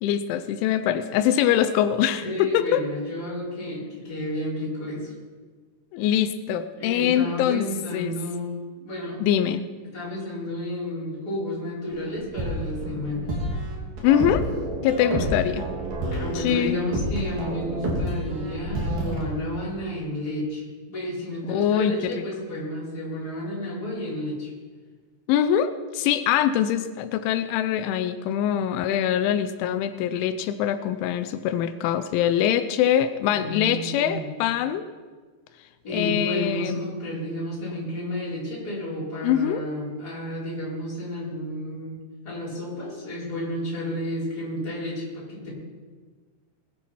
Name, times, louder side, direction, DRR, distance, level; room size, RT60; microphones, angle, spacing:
voice 1, 0.0-2.8 5.9-7.7 7.9-8.1 9.2-9.7 14.0-14.5 14.8-15.6 16.4-16.8 21.5-22.2 25.3-34.9 35.9-36.8 39.2-39.6, left 10 dB, 90° left, 10 dB, 3.1 m, -23 dB
voice 2, 2.2-5.1 6.7-9.2 9.9-13.3 15.0-15.2 16.1-24.5 33.3-34.3 35.8-42.0 42.2-45.5, left 1 dB, 20° left, -7 dB, 4.8 m, -31 dB
sound 1, 11.9-19.2, right 1 dB, 55° right, 4.0 m, -29 dB
20.5 x 10.0 x 4.6 m, 1.5 s
omnidirectional pair, 5.3 m